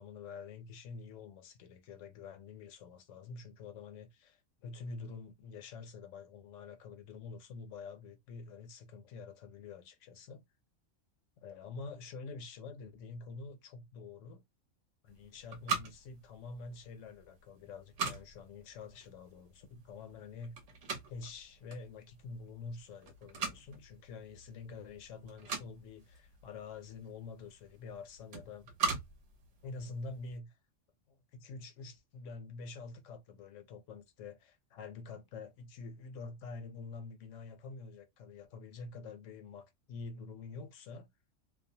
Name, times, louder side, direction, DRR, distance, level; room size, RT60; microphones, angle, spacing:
voice 1, 0.0-10.4 11.4-14.4 15.0-20.6 21.1-28.7 29.6-30.5 31.1-41.1, left 4 dB, 75° left, 0.9 m, -47 dB
sound 1, 15.1-30.3, right 4 dB, 70° right, 1.0 m, -42 dB
2.5 x 2.0 x 2.7 m
omnidirectional pair, 1.3 m